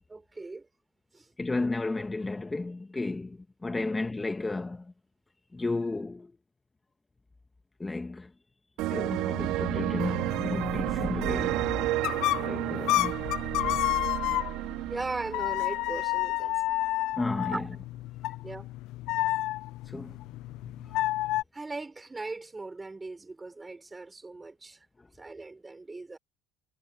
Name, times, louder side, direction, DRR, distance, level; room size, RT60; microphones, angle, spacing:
voice 1, 0.1-0.7 1.1-1.3 3.8-3.9 14.9-16.5 17.5-17.7 18.4-18.7 21.5-24.9 25.2-26.2, right 3 dB, 15° right, 5.0 m, -39 dB
voice 2, 1.4-4.9 5.5-6.3 7.8-8.3 8.9-11.6 12.4-13.3 17.2-17.7 19.8-20.2 20.6-21.0, left 3 dB, 15° left, 1.2 m, -33 dB
sound 1, 8.8-16.4, right 16 dB, 75° right, 2.7 m, -32 dB
sound 2, 9.8-14.8 15.3-21.4, left 17 dB, 70° left, 0.3 m, -31 dB
cardioid pair, 125°, 0 cm